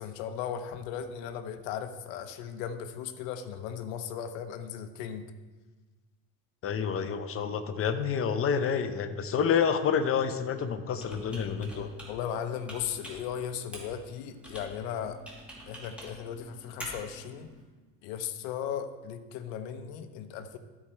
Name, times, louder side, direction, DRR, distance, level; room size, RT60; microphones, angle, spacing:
voice 1, 0.0-5.2 12.1-15.2 15.7-17.5 18.0-20.6, left 8 dB, 90° left, 9 dB, 0.8 m, -37 dB
voice 2, 6.6-11.9, left 7 dB, 35° left, 9 dB, 0.7 m, -28 dB
Computer keyboard, 10.9-17.6, equal, 5° right, 2.3 m, -47 dB
13.0 x 4.9 x 4.3 m, 1.3 s
cardioid pair, 120°, 40 cm